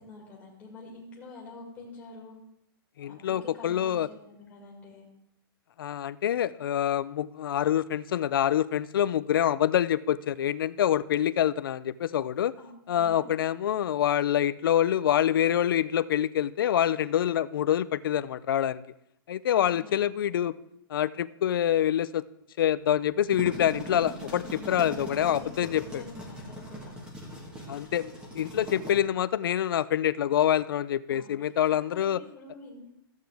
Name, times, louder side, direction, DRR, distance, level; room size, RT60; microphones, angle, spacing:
voice 1, 0.0-2.4 3.1-5.1 12.6-12.7 13.0-13.3 19.5-20.1 24.5-25.5 25.8-26.9 31.1-31.8 32.1-32.9, left 3 dB, 10° left, -3 dB, 2.2 m, -47 dB
voice 2, 3.0-4.1 5.8-12.5 12.9-18.8 19.3-20.6 20.9-22.2 22.6-26.0 27.7-32.2, left 10 dB, 65° left, 16 dB, 0.4 m, -26 dB
sound 1, 23.1-28.9, equal, 5° right, 1.4 m, -41 dB
13.5 x 8.1 x 3.4 m, 0.79 s
hypercardioid pair, 170°, 13 cm